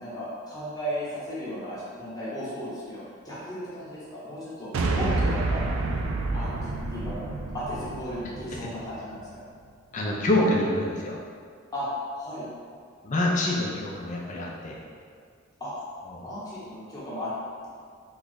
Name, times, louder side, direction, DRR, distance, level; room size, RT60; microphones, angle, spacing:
voice 1, 0.0-5.6 6.3-7.3 7.5-9.2 11.7-11.9 12.1-12.5 15.6-15.7 16.2-17.3, equal, 20° left, -10 dB, 1.0 m, -35 dB
sound 1, 4.7-9.2, right 3 dB, 75° right, 0.3 m, -29 dB
voice 2, 9.9-11.2 13.0-14.8 16.1-16.2, left 1 dB, 35° left, -2 dB, 0.5 m, -26 dB
3.1 x 2.3 x 3.8 m, 2.1 s
head